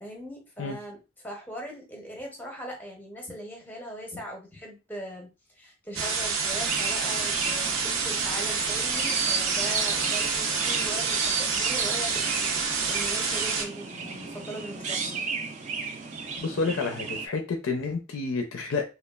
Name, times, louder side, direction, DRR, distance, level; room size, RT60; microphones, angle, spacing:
voice 1, 0.0-5.3 5.5-15.3, equal, 10° left, 1 dB, 0.6 m, -40 dB
sound 1, 6.0-13.7, right 5 dB, 85° right, 0.6 m, -28 dB
Chirp tweet, 6.5-17.3, right 5 dB, 35° right, 0.3 m, -33 dB
voice 2, 16.4-18.8, left 4 dB, 80° left, 4 dB, 0.5 m, -29 dB
3.0 x 2.3 x 2.3 m, 0.29 s
head